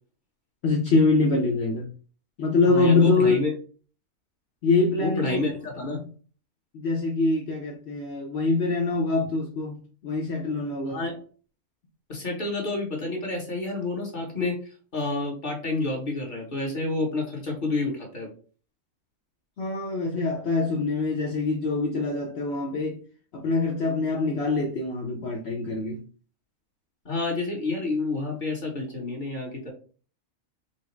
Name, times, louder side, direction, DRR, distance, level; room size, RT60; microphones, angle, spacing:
voice 1, 0.6-1.9 2.4-3.4 4.6-5.4 5.9-6.0 6.7-11.0 19.6-23.0 23.3-26.0, left 3 dB, 55° left, 0.9 m, -24 dB
voice 2, 2.7-3.5 5.0-6.0 10.9-11.2 12.1-14.6 14.9-18.3 27.0-29.7, left 2 dB, 35° left, 1.4 m, -29 dB
4.6 x 2.0 x 4.4 m
omnidirectional pair, 1.5 m